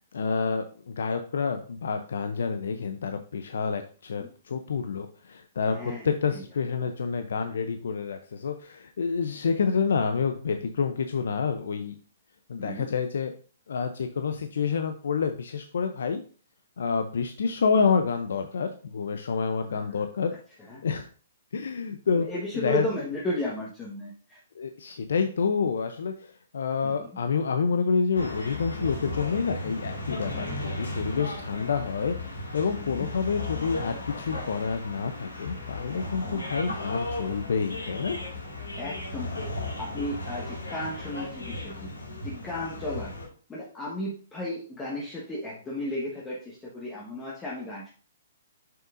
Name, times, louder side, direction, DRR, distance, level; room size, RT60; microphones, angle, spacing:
voice 1, 0.1-11.9 12.5-13.3 13.7-16.2 16.8-20.3 20.8-21.1 21.5-22.3 22.6-22.8 24.6-38.2, left 5 dB, 70° left, 7 dB, 0.6 m, -28 dB
voice 2, 5.7-6.1 12.6-12.8 19.7-19.8 20.7-20.8 22.1-24.4 26.8-26.9 32.7-33.1 36.2-36.4 38.8-41.9 42.2-43.1 43.5-47.9, left 1 dB, 15° left, -5 dB, 1.4 m, -34 dB
sound 1, 28.1-43.3, left 2 dB, 90° left, 2.2 m, -35 dB
7.3 x 5.7 x 2.6 m, 0.40 s
hypercardioid pair, 130°, 0 cm